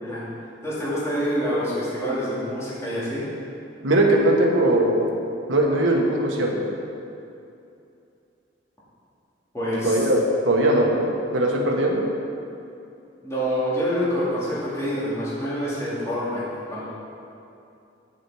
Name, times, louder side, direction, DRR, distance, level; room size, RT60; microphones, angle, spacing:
voice 1, 0.6-3.2 9.5-10.0 13.2-16.9, equal, 15° left, -10 dB, 2.2 m, -26 dB
voice 2, 3.8-5.1 5.5-6.7 9.8-10.2 10.4-12.1, right 1 dB, 75° right, -1 dB, 1.3 m, -20 dB
8.4 x 7.4 x 4.8 m, 2.6 s
head